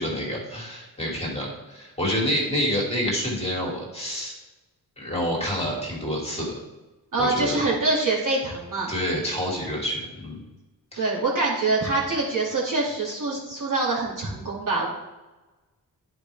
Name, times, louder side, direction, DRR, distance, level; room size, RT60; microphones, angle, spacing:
voice 1, 0.0-4.3 5.0-6.6 7.2-7.6 8.9-10.4 10.9-11.1, equal, 15° left, -3 dB, 2.5 m, -28 dB
voice 2, 7.1-8.9 10.9-14.9, right 3 dB, 55° right, -5 dB, 2.7 m, -25 dB
9.8 x 5.0 x 3.5 m, 1.1 s
cardioid pair, 60°, 38 cm